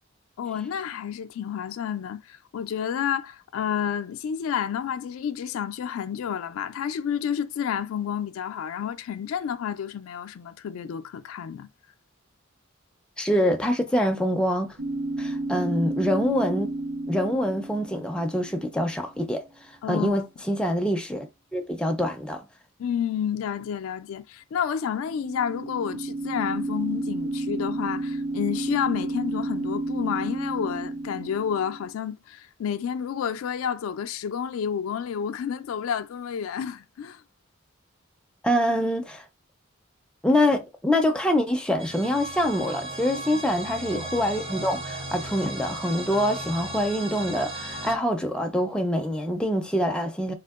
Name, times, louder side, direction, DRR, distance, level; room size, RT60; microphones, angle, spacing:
voice 1, 0.4-11.7 19.8-20.2 22.8-37.2 43.1-43.4, left 8 dB, 85° left, 0.3 m, -30 dB
voice 2, 13.2-14.8 15.2-16.7 17.1-19.4 19.9-21.3 21.5-22.4 38.4-39.2 40.2-50.3, equal, 5° left, 0.4 m, -25 dB
sound 1, 14.8-18.8 24.9-31.9, right 2 dB, 75° right, 1.0 m, -31 dB
sound 2, 41.8-48.0, right 2 dB, 30° right, 0.8 m, -36 dB
3.6 x 2.5 x 2.3 m
head